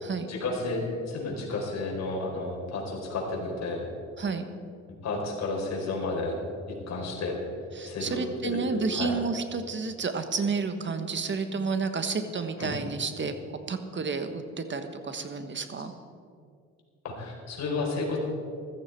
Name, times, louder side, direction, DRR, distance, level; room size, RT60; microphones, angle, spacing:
voice 1, 0.3-3.8 5.0-6.4 6.7-7.4 7.8-9.1 12.6-12.7 17.0-18.2, left 3 dB, 60° left, -1 dB, 4.0 m, -32 dB
voice 2, 7.7-13.3 13.7-15.9, right 4 dB, 40° right, 8 dB, 1.3 m, -31 dB
14.5 x 14.0 x 4.6 m, 2.3 s
cardioid pair, 90°, 30 cm